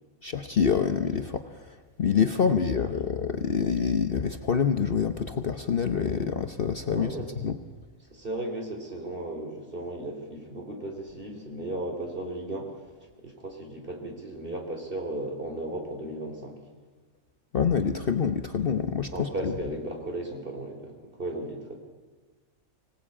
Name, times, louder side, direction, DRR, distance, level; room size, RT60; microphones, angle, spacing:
voice 1, 0.2-1.6 2.0-7.6 17.5-19.5, left 6 dB, 45° left, 7 dB, 1.0 m, -26 dB
voice 2, 2.4-3.1 6.8-7.3 8.1-16.6 19.1-21.8, right 1 dB, 40° right, 3 dB, 3.9 m, -36 dB
24.5 x 18.0 x 8.6 m, 1.4 s
omnidirectional pair, 1.5 m